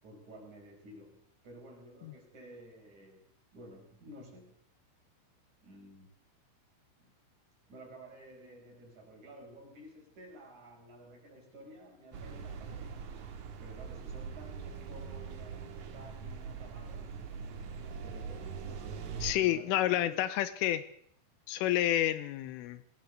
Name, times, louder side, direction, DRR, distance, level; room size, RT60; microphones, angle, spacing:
voice 1, 0.0-3.2 3.5-4.6 5.6-6.1 7.0-7.1 7.7-13.3 13.6-17.2 18.0-20.2, right 1 dB, 35° right, 0 dB, 6.9 m, -53 dB
sound 1, 12.1-19.3, right 6 dB, 60° right, 2.2 m, -42 dB
voice 2, 19.2-20.8 21.5-22.8, left 13 dB, 85° left, 13 dB, 3.6 m, -29 dB
20.5 x 17.0 x 7.9 m, 0.65 s
omnidirectional pair, 5.7 m